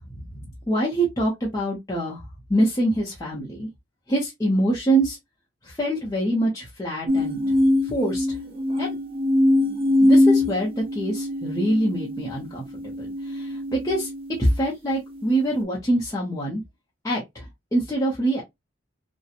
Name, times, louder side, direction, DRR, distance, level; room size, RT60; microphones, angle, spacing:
voice 1, 0.1-2.2 2.5-3.7 4.1-5.2 5.6-7.4 7.8-8.4 8.8-9.0 10.0-14.1 14.4-16.6 17.0-18.4, right 1 dB, 15° left, 0.7 m, -25 dB
sound 1, 7.1-14.5 15.1-15.6, left 1 dB, 30° right, 0.6 m, -23 dB
2.8 x 2.1 x 2.4 m
head